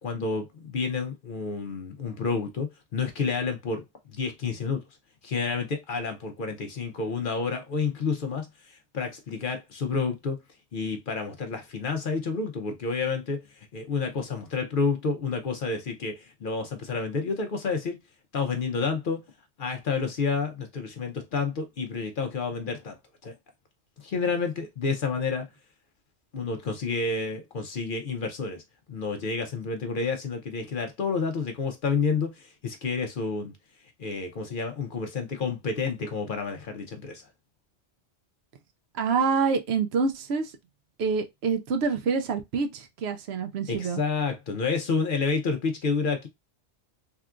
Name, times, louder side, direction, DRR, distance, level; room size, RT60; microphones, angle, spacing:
voice 1, 0.0-3.8 4.1-4.8 5.2-10.4 10.7-18.0 18.3-19.2 19.6-23.0 23.2-23.3 24.0-25.4 26.3-28.6 28.9-33.5 34.0-37.2 43.7-46.3, left 4 dB, 55° left, 0.6 m, -29 dB
voice 2, 38.9-40.5 41.0-44.0, right 5 dB, 70° right, 0.8 m, -26 dB
3.6 x 2.3 x 2.2 m
omnidirectional pair, 1.2 m